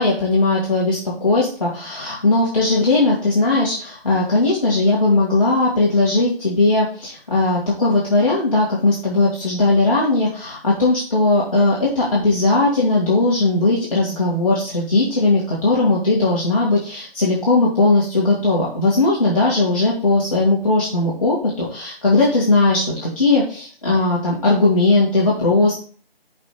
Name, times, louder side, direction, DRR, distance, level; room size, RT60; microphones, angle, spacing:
voice 1, 0.0-25.7, left 2 dB, 35° left, -6 dB, 2.2 m, -18 dB
11.5 x 5.4 x 2.3 m, 0.42 s
figure-of-eight pair, 165°, 31 cm